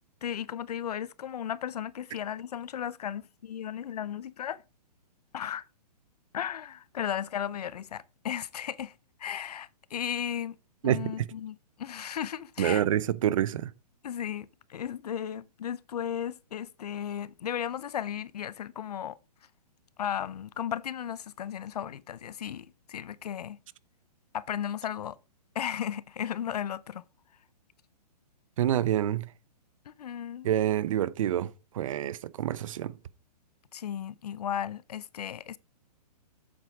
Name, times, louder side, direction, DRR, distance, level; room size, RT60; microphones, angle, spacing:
voice 1, 0.2-4.6 5.3-5.6 6.3-8.9 9.2-10.6 10.8-12.8 14.0-19.2 20.0-23.6 24.3-25.2 25.5-27.0 29.9-30.5 33.7-35.6, left 9 dB, 70° left, 0.7 m, -35 dB
voice 2, 10.8-11.1 12.6-13.7 28.6-29.3 30.4-32.9, right 11 dB, 50° right, 0.7 m, -27 dB
8.2 x 7.6 x 4.9 m
hypercardioid pair, 150°, 21 cm